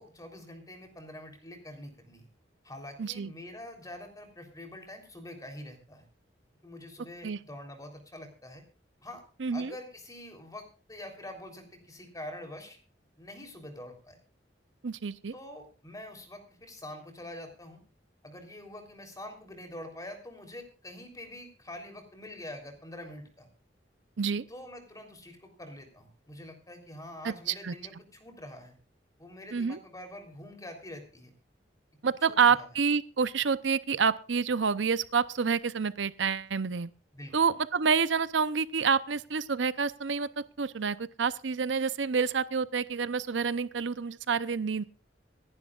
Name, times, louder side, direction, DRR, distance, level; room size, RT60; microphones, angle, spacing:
voice 1, 0.0-2.3 2.6-6.1 6.6-8.6 9.0-9.2 9.5-12.8 13.2-14.2 15.3-17.8 18.2-23.5 24.5-28.7 29.2-31.3 32.3-32.7 37.1-37.3, left 1 dB, 20° left, 4 dB, 3.5 m, -45 dB
voice 2, 3.0-3.3 7.2-7.4 9.4-9.7 14.8-15.3 24.2-24.4 27.2-27.7 29.5-29.8 32.0-36.9 37.3-40.3 40.6-44.8, right 5 dB, 90° right, 15 dB, 0.7 m, -28 dB
26.0 x 11.0 x 2.4 m, 0.36 s
head